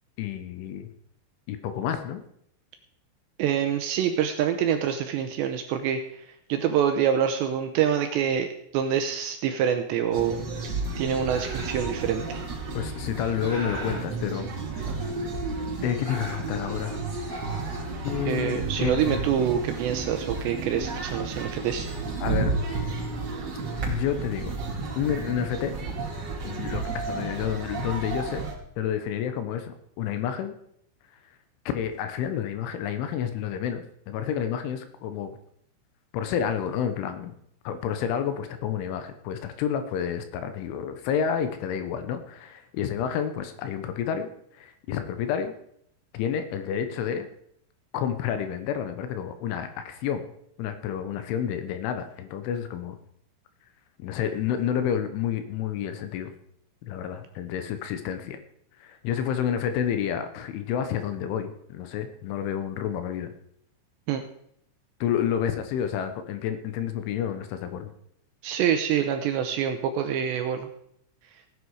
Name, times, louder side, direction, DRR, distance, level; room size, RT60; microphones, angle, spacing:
voice 1, 0.2-0.9 1.5-2.2 12.7-14.5 14.8-14.9 15.8-17.1 18.0-19.2 22.2-22.5 23.9-24.5 25.0-25.7 26.4-28.4 28.8-30.5 31.7-35.3 36.1-37.3 37.6-44.3 44.5-45.5 46.1-47.3 47.9-50.2 50.6-53.0 54.0-56.3 56.8-58.4 58.8-63.3 65.0-67.9, left 9 dB, 75° left, 9 dB, 3.4 m, -29 dB
voice 2, 3.4-6.0 6.5-10.4 10.6-12.4 18.2-21.9 64.1-64.2 68.4-70.7, right 8 dB, 80° right, 7 dB, 2.6 m, -26 dB
sound 1, 10.1-28.5, right 3 dB, 40° right, 3.3 m, -32 dB
sound 2, 11.2-11.9 12.8-14.0 14.9-15.5 15.8-16.7 17.2-18.4, equal, 15° left, 4.4 m, -40 dB
17.0 x 9.8 x 4.8 m, 0.71 s
omnidirectional pair, 5.8 m